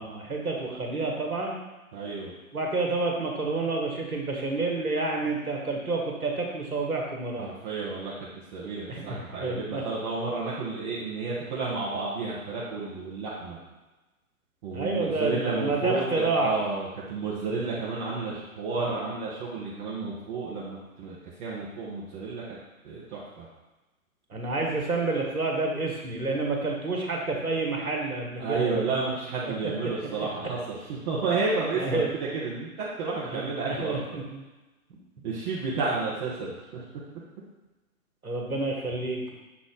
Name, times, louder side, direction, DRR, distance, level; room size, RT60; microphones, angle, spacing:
voice 1, 0.0-1.6 2.5-7.5 8.9-9.8 14.7-16.5 18.8-18.9 24.3-29.1 29.6-29.7 30.2-30.3 31.8-32.1 33.3-34.4 38.2-39.2, right 3 dB, 85° right, 0 dB, 1.5 m, -29 dB
voice 2, 1.9-2.3 7.4-13.6 14.6-22.6 22.8-23.5 28.4-34.2 35.2-36.8, right 4 dB, 30° right, -7 dB, 1.2 m, -31 dB
7.1 x 3.9 x 3.8 m, 1.1 s
figure-of-eight pair, 125°, 43 cm